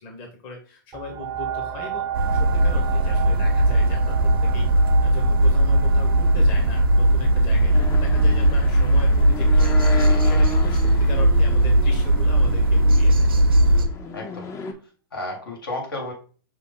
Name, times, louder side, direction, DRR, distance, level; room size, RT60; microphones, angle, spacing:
voice 1, 0.0-4.1 4.4-4.7 5.0-10.0 10.2-13.3, left 3 dB, 45° left, 3 dB, 1.1 m, -38 dB
sound 1, 0.9-10.2 10.8-10.9, right 9 dB, 30° right, 0.6 m, -35 dB
sound 2, 2.1-13.9, right 1 dB, 90° right, 0.7 m, -18 dB
voice 2, 7.5-7.8 14.1-14.5 15.1-16.1, left 2 dB, 90° left, 1 dB, 1.8 m, -33 dB
sound 3, 7.7-14.7, left 5 dB, 25° left, 0.5 m, -34 dB
5.7 x 2.0 x 3.6 m, 0.39 s
hypercardioid pair, 120°, 12 cm